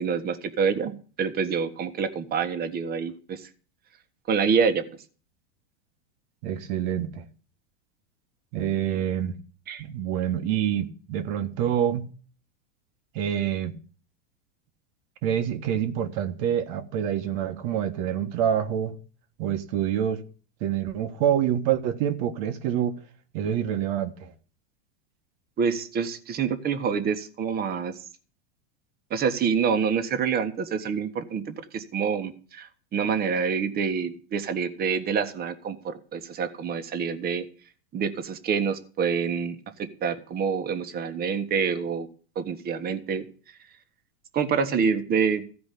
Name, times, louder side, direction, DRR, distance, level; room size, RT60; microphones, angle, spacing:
voice 1, 0.0-3.5 4.3-4.8 9.7-9.8 25.6-27.9 29.1-37.4 37.9-39.6 40.0-42.1 42.3-43.3 44.3-45.4, right 6 dB, 30° right, 1.5 m, -27 dB
voice 2, 6.4-7.2 8.5-9.4 9.8-12.1 13.1-13.7 15.2-19.0 19.4-20.2 20.6-23.0 23.3-24.3, right 9 dB, 55° right, 1.5 m, -26 dB
15.0 x 5.1 x 8.4 m
supercardioid pair, 130°, 33 cm